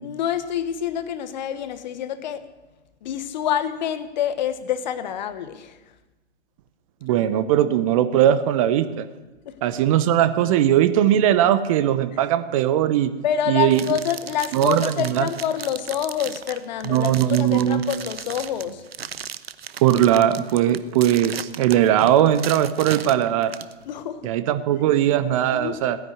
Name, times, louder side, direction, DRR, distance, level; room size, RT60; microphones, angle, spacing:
voice 1, 0.0-2.5 3.0-5.8 9.4-9.6 13.2-18.8 23.9-24.4 25.5-25.8, left 9 dB, 40° left, 13 dB, 1.2 m, -27 dB
voice 2, 7.0-9.1 9.6-13.1 13.5-13.8 14.5-15.3 16.9-17.9 19.8-23.5 24.2-26.0, right 11 dB, 30° right, 12 dB, 0.9 m, -19 dB
sound 1, 13.7-23.7, right 8 dB, 65° right, 1.0 m, -36 dB
17.0 x 10.5 x 7.9 m, 1.1 s
figure-of-eight pair, 120°, 33 cm